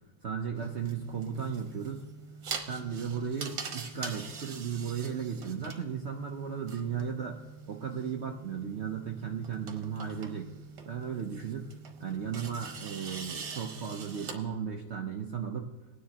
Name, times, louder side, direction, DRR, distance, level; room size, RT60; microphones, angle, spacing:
voice 1, 0.2-2.0 2.6-7.4 7.7-10.5 10.9-11.7 12.0-15.7, right 7 dB, 85° right, 1 dB, 0.6 m, -35 dB
sound 1, 0.6-14.3, right 5 dB, 60° right, 1.6 m, -44 dB
21.0 x 9.5 x 2.9 m, 1.1 s
omnidirectional pair, 2.3 m